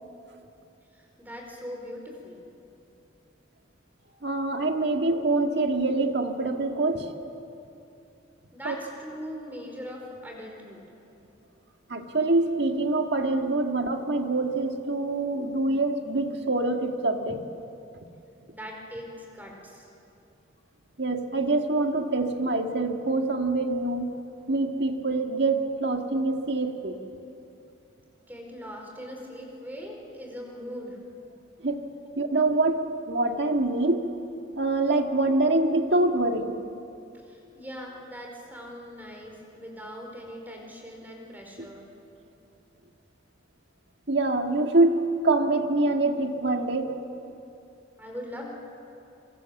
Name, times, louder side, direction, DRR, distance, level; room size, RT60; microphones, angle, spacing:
voice 1, 0.9-2.4 8.5-10.9 18.5-19.9 28.3-31.0 37.3-41.9 48.0-48.5, equal, 10° right, 0 dB, 4.8 m, -40 dB
voice 2, 4.2-7.1 8.7-8.8 11.9-17.4 21.0-24.2 24.5-27.0 31.6-31.9 32.2-34.1 34.5-36.6 41.6-41.7 44.1-46.9, right 2 dB, 60° right, 4 dB, 1.9 m, -25 dB
26.0 x 25.0 x 7.2 m, 2.8 s
head